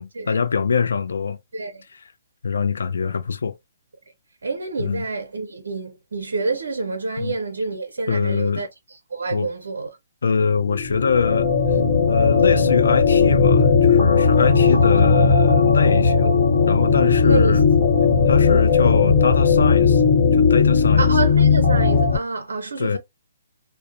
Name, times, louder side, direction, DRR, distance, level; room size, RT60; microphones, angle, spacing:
voice 1, 0.0-1.4 1.9-2.1 2.4-3.5 4.8-5.0 7.2-7.3 8.1-8.6 9.3-9.5 10.2-11.5 12.1-17.6 18.3-20.0 20.3-21.1 22.8-23.0, left 5 dB, 80° left, 0.3 m, -23 dB
voice 2, 1.5-1.8 4.4-9.9 14.6-14.8 17.2-17.6 18.4-18.8 21.0-23.0, right 3 dB, 85° right, 0.5 m, -28 dB
sound 1, 10.7-22.2, left 5 dB, 30° left, 1.0 m, -16 dB
2.6 x 2.0 x 2.4 m
hypercardioid pair, 150°, 0 cm